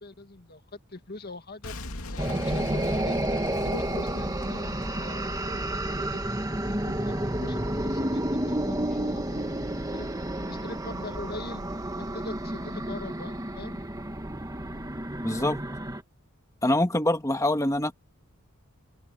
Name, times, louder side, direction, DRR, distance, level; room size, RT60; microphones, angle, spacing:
voice 1, 0.0-1.7 2.1-6.3 6.8-8.2 8.5-9.5 9.9-10.1 10.5-11.6 12.1-13.8, left 2 dB, 45° left, 2.0 m, -42 dB
Boom, 1.6-6.6, left 1 dB, 80° left, 2.6 m, -39 dB
sound 1, 2.2-16.0, right 1 dB, 15° right, 1.7 m, -30 dB
voice 2, 15.2-15.6 16.6-17.9, left 1 dB, 15° left, 1.6 m, -24 dB
head